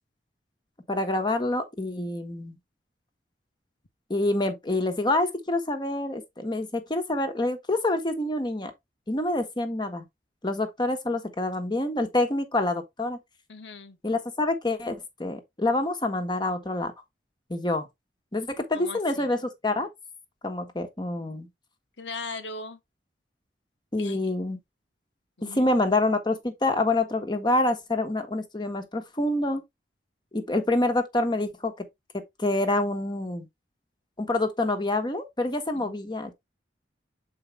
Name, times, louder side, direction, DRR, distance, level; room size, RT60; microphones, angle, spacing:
voice 1, 0.9-2.6 4.1-8.7 9.1-10.1 10.4-13.2 14.0-16.9 17.5-17.9 18.3-19.4 19.6-19.9 20.4-21.5 23.9-24.6 25.4-29.6 30.3-31.7 32.4-33.5 34.2-36.3, left 2 dB, 25° left, 1.2 m, -27 dB
voice 2, 13.5-14.0 18.7-19.3 22.0-22.8 24.0-24.3 25.4-25.8 35.7-36.0, left 3 dB, 90° left, 1.1 m, -39 dB
7.3 x 4.6 x 3.1 m
head